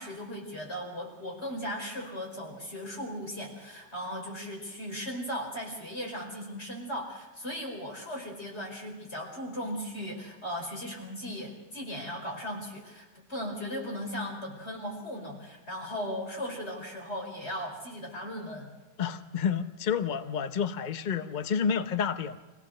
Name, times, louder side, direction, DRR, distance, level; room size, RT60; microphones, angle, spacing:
voice 1, 0.0-18.7, equal, 35° left, 0 dB, 5.2 m, -37 dB
voice 2, 19.0-22.4, left 7 dB, 60° left, 10 dB, 0.5 m, -29 dB
25.5 x 17.0 x 6.5 m, 1.2 s
omnidirectional pair, 1.9 m